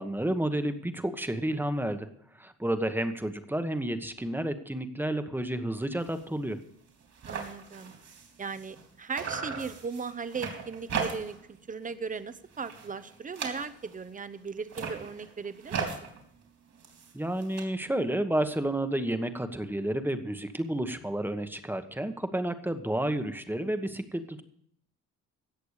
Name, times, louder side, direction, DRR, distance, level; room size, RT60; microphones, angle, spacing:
voice 1, 0.0-2.1 2.3-6.6 17.1-24.4, right 1 dB, 5° right, 8 dB, 1.3 m, -31 dB
sound 1, 6.0-6.2 6.6-6.7 6.9-8.9 9.1-11.5 11.8-12.2 12.5-14.0 14.6-17.6, right 5 dB, 60° right, 3.9 m, -38 dB
voice 2, 7.3-7.9 8.4-16.1, right 5 dB, 25° right, 12 dB, 1.0 m, -37 dB
17.0 x 6.7 x 6.6 m, 0.68 s
cardioid pair, 90°, 30 cm